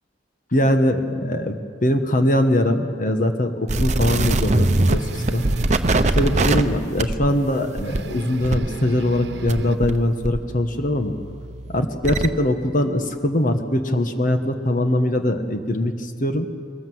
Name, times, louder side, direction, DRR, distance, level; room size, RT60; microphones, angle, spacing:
voice 1, 0.5-5.4 6.1-11.1 11.7-16.5, left 1 dB, 50° left, 7 dB, 1.4 m, -22 dB
sound 1, 3.7-10.0 10.2-12.3, right 2 dB, 40° right, 0.9 m, -23 dB
sound 2, 4.8-6.7 7.8-9.8, right 2 dB, 75° right, 1.1 m, -36 dB
21.5 x 19.5 x 7.9 m, 2.2 s
head